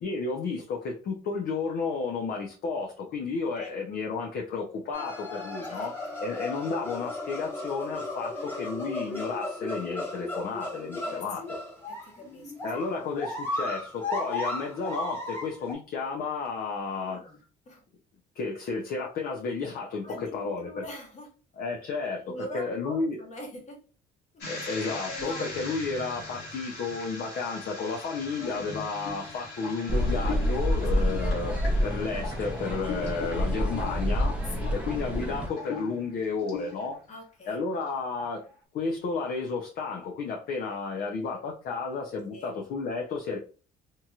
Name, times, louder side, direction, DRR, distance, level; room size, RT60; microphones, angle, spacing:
voice 1, 0.0-5.9 6.2-11.6 12.6-17.2 18.3-20.1 20.3-20.8 21.6-23.2 24.5-31.5 31.8-37.0 37.5-38.4 38.7-43.4, left 4 dB, 60° left, 0 dB, 0.6 m, -32 dB
sound 1, 4.9-15.7, left 2 dB, 10° left, 1.3 m, -35 dB
voice 2, 5.7-6.2 11.0-11.6 11.9-12.5 16.9-17.4 17.6-17.8 20.0-21.3 22.3-23.8 24.3-25.8 30.9-31.2 34.5-34.8 37.1-37.7 42.3-42.5, equal, 45° left, 1 dB, 1.4 m, -43 dB
sound 2, 24.4-37.2 37.6-37.9 38.2-38.5, left 4 dB, 85° left, 1.3 m, -40 dB
sound 3, 29.9-35.5, equal, 5° right, 0.6 m, -28 dB
2.9 x 2.7 x 2.3 m, 0.37 s
cardioid pair, 110°, 17 cm